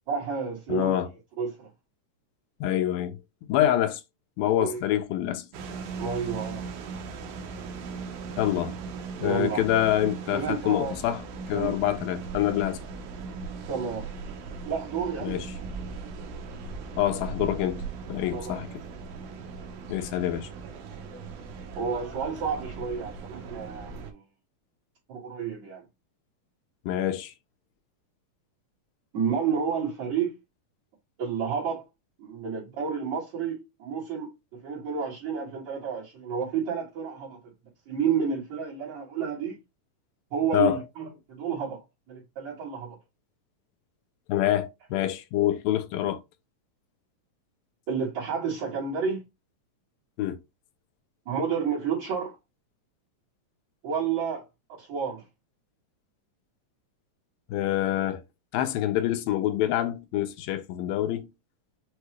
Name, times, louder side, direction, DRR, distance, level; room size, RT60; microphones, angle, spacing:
voice 1, 0.1-1.0 1.4-1.7 4.6-4.8 6.0-6.7 9.2-9.6 10.3-10.9 11.5-11.8 13.7-14.1 14.6-15.3 18.3-18.6 21.8-24.2 25.1-25.8 29.1-30.3 31.2-31.8 32.2-37.4 37.9-39.6 40.3-41.8 42.1-43.0 47.9-49.2 51.3-52.4 53.8-54.4 54.8-55.2, right 6 dB, 60° right, 2.4 m, -30 dB
voice 2, 0.7-1.1 2.6-3.2 3.5-4.0 4.4-5.5 8.4-8.8 9.2-11.2 11.5-12.8 15.2-15.5 17.0-17.8 18.1-18.7 19.9-20.5 26.9-27.3 40.5-40.8 44.3-46.2 50.2-50.4 57.5-58.2 58.5-61.3, left 12 dB, 90° left, 2.4 m, -26 dB
sound 1, 5.5-24.1, right 5 dB, 75° right, 1.8 m, -39 dB
6.4 x 2.3 x 3.1 m
omnidirectional pair, 4.0 m